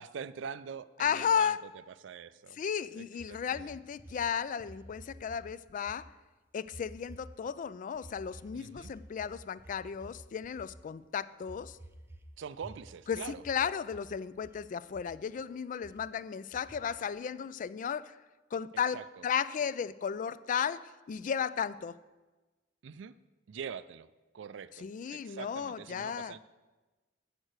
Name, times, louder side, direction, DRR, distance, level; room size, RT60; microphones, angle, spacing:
voice 1, 0.0-1.6 2.0-2.6 2.9-3.7 8.5-8.9 12.4-13.4 18.9-19.2 22.8-23.1 23.5-24.1 24.3-26.4, right 7 dB, 70° right, 15 dB, 0.4 m, -44 dB
voice 2, 1.0-1.6 2.5-6.1 6.5-11.8 13.1-18.2 18.5-19.0 19.2-22.0 24.8-26.3, left 7 dB, 45° left, 17 dB, 0.3 m, -34 dB
sound 1, 3.2-5.4 5.7-6.0 6.6-7.5 7.9-10.9 11.4-12.3 12.6-13.6 13.9-14.6 14.9-15.4 15.8-16.0 16.5-17.1, right 1 dB, 10° right, 0.5 m, -52 dB
7.4 x 6.4 x 7.9 m, 1.2 s
head